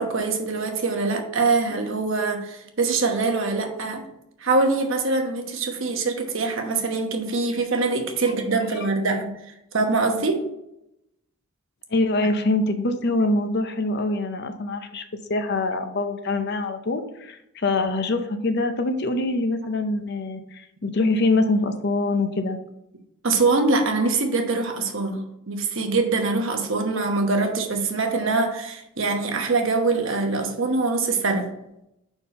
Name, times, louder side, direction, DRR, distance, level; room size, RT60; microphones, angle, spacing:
voice 1, 0.0-4.1 4.4-9.3 9.7-10.5 23.2-31.5, right 3 dB, 60° right, 4 dB, 1.0 m, -23 dB
voice 2, 11.9-22.6, left 2 dB, 50° left, 8 dB, 0.6 m, -24 dB
5.5 x 4.5 x 5.4 m, 0.83 s
head